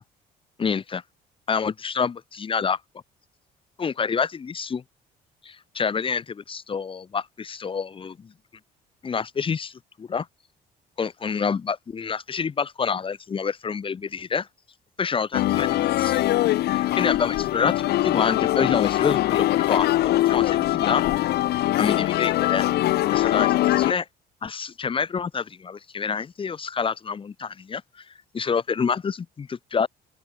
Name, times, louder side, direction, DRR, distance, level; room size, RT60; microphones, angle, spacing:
voice 1, 0.6-1.0 1.5-2.8 3.8-4.8 5.4-8.3 9.0-10.3 11.0-14.5 15.0-15.7 16.0-16.2 16.7-21.0 21.8-22.7 23.1-24.1 24.4-27.8 28.3-29.9, left 6 dB, 30° left, 1.6 m, -27 dB
sound 1, 15.3-23.9, left 15 dB, 75° left, 2.4 m, -22 dB
open air
cardioid pair, 110°, 17 cm